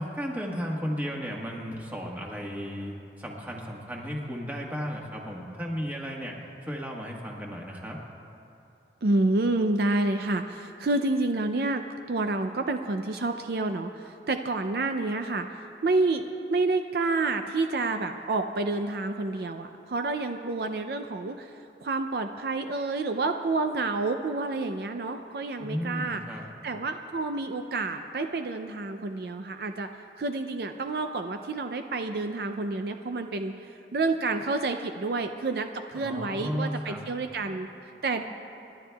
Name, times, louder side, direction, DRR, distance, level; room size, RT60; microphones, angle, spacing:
voice 1, 0.0-8.0 25.6-26.4 35.9-37.0, equal, 10° right, -2 dB, 1.4 m, -34 dB
voice 2, 9.0-26.2 26.6-37.7 38.0-38.2, right 3 dB, 60° right, 7 dB, 0.4 m, -29 dB
29.5 x 11.5 x 2.3 m, 2.6 s
head